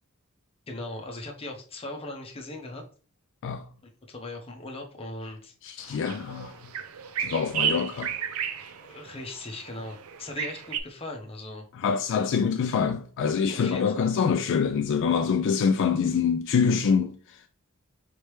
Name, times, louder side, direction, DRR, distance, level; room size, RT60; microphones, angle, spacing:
voice 1, 0.7-2.8 4.1-6.1 7.7-7.8 8.5-11.7 13.5-14.1, left 2 dB, 25° left, 0.8 m, -39 dB
voice 2, 5.6-6.6 7.2-8.1 11.7-17.4, left 6 dB, 60° left, 0.3 m, -25 dB
sound 1, 5.8-10.8, right 8 dB, 85° right, 0.5 m, -33 dB
4.2 x 3.2 x 3.1 m
head